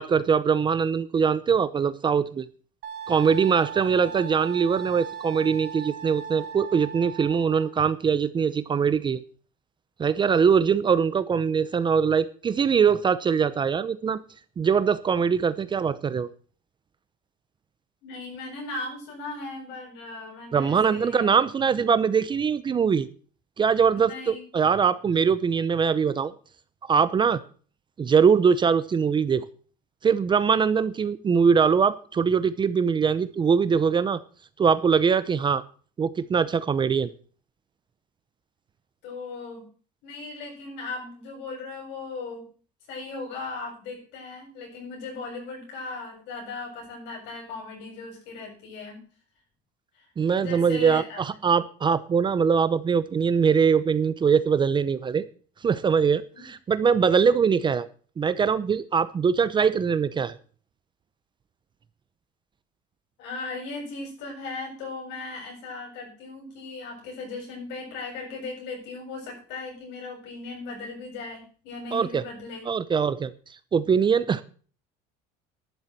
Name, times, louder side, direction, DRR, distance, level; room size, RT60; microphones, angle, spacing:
voice 1, 0.0-2.4 3.1-9.2 10.0-14.2 14.6-16.3 20.5-23.1 23.6-26.3 26.8-27.4 28.0-29.4 30.0-34.2 34.6-35.6 36.0-37.1 50.2-55.2 55.6-57.9 58.2-60.4 71.9-72.2 72.7-73.3 73.7-74.4, right 6 dB, 25° right, 14 dB, 0.7 m, -22 dB
Wind instrument woodwind instrument, 2.8-7.7, right 8 dB, 55° right, 4.3 m, -38 dB
voice 2, 18.0-21.4 23.9-24.7 39.0-39.7 40.0-42.4 42.9-49.0 49.9-50.1 50.4-51.2 56.3-56.5 63.2-72.7, left 3 dB, 65° left, 1 dB, 7.5 m, -37 dB
11.5 x 7.2 x 7.4 m, 0.42 s
cardioid pair, 135°, 19 cm